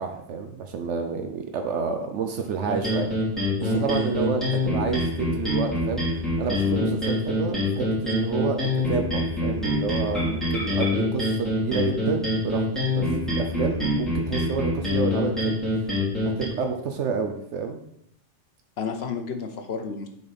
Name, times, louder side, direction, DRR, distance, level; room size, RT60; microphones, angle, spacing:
voice 1, 0.0-3.1 3.6-6.1 6.4-15.8 16.2-17.8, right 5 dB, 75° right, 5 dB, 1.0 m, -29 dB
sound 1, 2.7-16.5, left 1 dB, ahead, 2.6 m, -25 dB
voice 2, 3.6-4.1 18.8-20.1, left 6 dB, 60° left, 6 dB, 1.0 m, -30 dB
7.0 x 4.2 x 5.2 m, 0.76 s
omnidirectional pair, 1.2 m